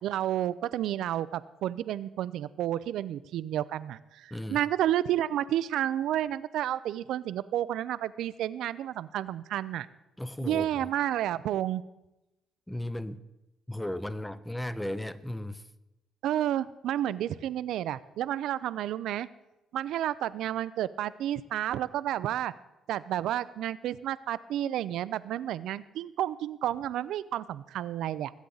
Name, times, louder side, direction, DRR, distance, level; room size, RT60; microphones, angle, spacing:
voice 1, 0.0-9.9 10.4-11.8 16.2-19.3 19.7-22.5 22.9-28.3, right 12 dB, 85° right, 0.4 m, -31 dB
voice 2, 4.3-4.6 10.2-10.9 12.7-13.2 13.7-15.6, left 1 dB, 5° left, 0.6 m, -35 dB
21.0 x 8.4 x 3.9 m
cardioid pair, 90°, 0 cm